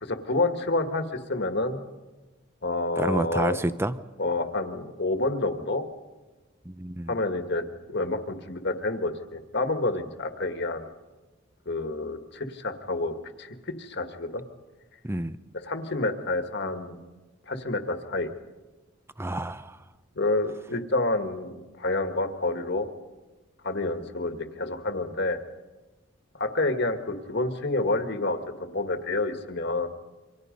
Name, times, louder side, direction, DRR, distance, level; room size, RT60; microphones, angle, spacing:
voice 1, 0.0-1.8 2.6-3.6 4.2-5.8 7.1-10.9 11.7-14.4 15.6-17.0 17.5-18.3 20.2-22.9 23.6-25.4 26.3-29.9, left 2 dB, 55° left, 6 dB, 1.8 m, -28 dB
voice 2, 3.0-4.0 6.7-7.1 15.0-15.4 19.2-19.8, right 1 dB, 10° right, 13 dB, 0.7 m, -29 dB
28.5 x 25.0 x 5.3 m, 1.2 s
head